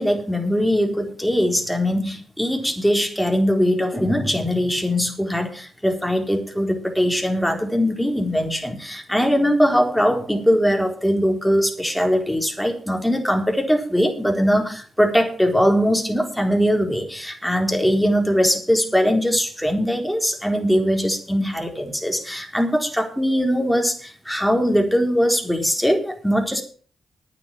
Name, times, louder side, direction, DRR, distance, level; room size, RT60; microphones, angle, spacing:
voice 1, 0.0-26.6, equal, ahead, 3 dB, 4.0 m, -21 dB
9.8 x 9.4 x 7.6 m, 0.43 s
hypercardioid pair, 40°, 0 cm